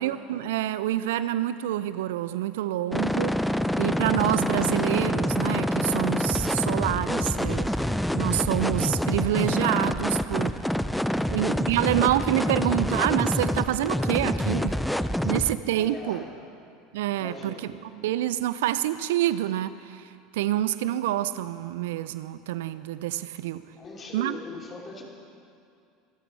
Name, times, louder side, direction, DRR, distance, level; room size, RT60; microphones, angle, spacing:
voice 1, 0.0-3.4 3.8-10.6 11.3-14.8 15.2-16.2 16.9-23.6 24.1-24.4, right 13 dB, 65° right, 14 dB, 0.4 m, -27 dB
sound 1, 2.9-15.6, equal, 5° left, 0.5 m, -26 dB
voice 2, 11.1-11.5 15.7-16.4 17.2-17.7 23.8-25.0, left 3 dB, 30° left, -1 dB, 3.1 m, -41 dB
26.0 x 13.5 x 3.3 m, 2.4 s
figure-of-eight pair, 75°, 0 cm